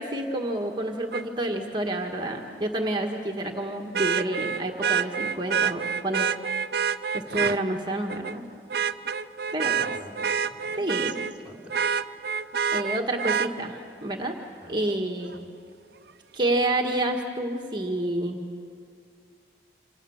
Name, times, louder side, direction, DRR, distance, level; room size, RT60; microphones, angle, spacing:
voice 1, 0.0-6.5 7.1-8.4 9.5-9.7 10.8-11.1 12.7-14.3 14.7-15.3 16.3-18.4, right 1 dB, 25° right, 2 dB, 1.7 m, -29 dB
Vehicle horn car horn honking, 1.1-1.2 3.9-7.6 8.1-8.4 8.7-11.3 11.7-13.5 15.3-15.4, right 7 dB, 60° right, 0.7 m, -27 dB
voice 2, 9.6-11.7 14.6-14.8 15.3-15.4, equal, 5° right, 0 dB, 4.2 m, -46 dB
29.0 x 26.5 x 7.2 m, 2.3 s
head